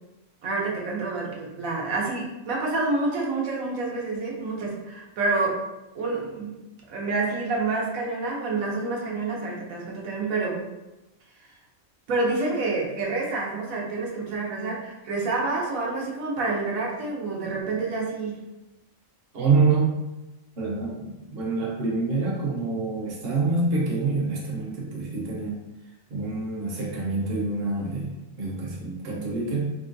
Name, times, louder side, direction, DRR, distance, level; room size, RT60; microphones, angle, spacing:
voice 1, 0.4-5.6 5.9-6.6 6.9-10.6 12.1-18.4 29.1-29.4, right 3 dB, 85° right, -2 dB, 1.1 m, -28 dB
voice 2, 19.3-19.9 20.6-25.6 26.1-29.7, right 4 dB, 55° right, -3 dB, 0.9 m, -26 dB
3.7 x 2.2 x 2.5 m, 1.0 s
omnidirectional pair, 1.4 m